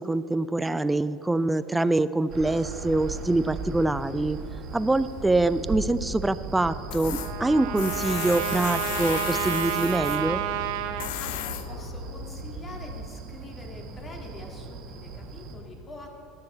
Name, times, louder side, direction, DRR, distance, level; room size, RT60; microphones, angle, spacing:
voice 1, 0.0-4.4 4.7-10.4, right 2 dB, 10° right, 14 dB, 0.4 m, -25 dB
sound 1, 2.3-15.6, right 4 dB, 45° right, 1.6 m, -39 dB
Trumpet, 6.6-11.1, right 11 dB, 65° right, 0.7 m, -31 dB
Tools, 6.9-13.1, left 9 dB, 65° left, 0.5 m, -35 dB
voice 2, 10.8-16.1, left 2 dB, 25° left, 1 dB, 2.1 m, -45 dB
17.5 x 6.7 x 4.4 m, 2.9 s
figure-of-eight pair, 70°, 0 cm